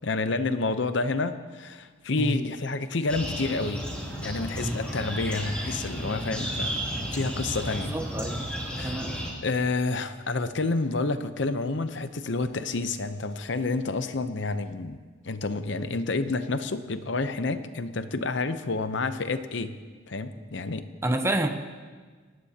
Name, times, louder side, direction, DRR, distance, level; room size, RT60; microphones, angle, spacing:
voice 1, 0.0-3.8 4.2-6.8 7.1-8.0 8.8-9.0 9.4-15.0 15.2-19.8 20.1-20.8, left 3 dB, 60° left, 10 dB, 0.7 m, -29 dB
sound 1, 3.1-9.3, equal, 5° left, 2.9 m, -33 dB
voice 2, 7.9-8.4 8.8-9.1 20.4-20.5 21.0-21.5, right 1 dB, 15° right, 6 dB, 0.8 m, -28 dB
24.0 x 18.5 x 2.9 m, 1.5 s
head